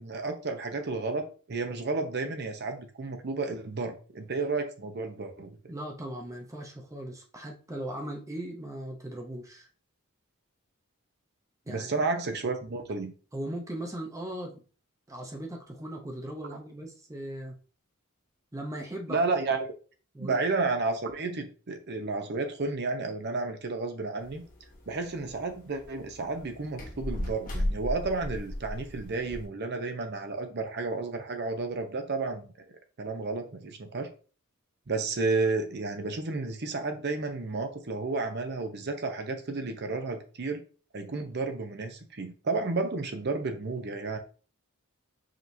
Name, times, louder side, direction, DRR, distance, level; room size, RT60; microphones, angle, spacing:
voice 1, 0.0-5.5 11.7-13.1 19.1-19.6 20.2-24.4 24.9-32.5 33.0-34.1 34.9-40.6 40.9-44.2, right 3 dB, 50° right, 6 dB, 0.7 m, -32 dB
voice 2, 5.7-9.7 11.7-11.9 13.3-14.6 15.1-17.6 18.5-19.2 20.1-20.4, right 1 dB, 15° right, 1 dB, 0.6 m, -38 dB
sound 1, 24.2-29.5, left 1 dB, 40° left, 1.2 m, -36 dB
5.0 x 2.9 x 2.6 m, 0.38 s
head